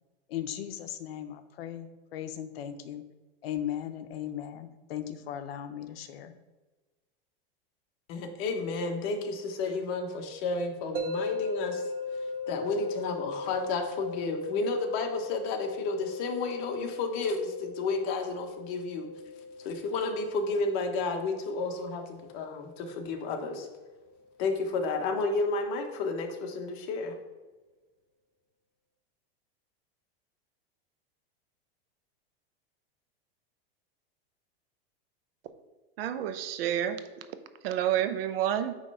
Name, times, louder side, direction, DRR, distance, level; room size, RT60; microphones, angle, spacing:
voice 1, 0.3-3.0 3.4-6.3, left 10 dB, 75° left, 9 dB, 0.8 m, -37 dB
voice 2, 8.1-11.8 12.5-19.1 19.6-23.7 24.4-27.1, left 3 dB, 45° left, 3 dB, 1.2 m, -31 dB
sound 1, 10.9-24.0, left 3 dB, 30° right, 0.8 m, -39 dB
voice 3, 36.0-37.0 37.6-38.7, right 11 dB, 70° right, 10 dB, 0.8 m, -29 dB
8.9 x 3.3 x 5.5 m, 1.3 s
supercardioid pair, 155°, 30 cm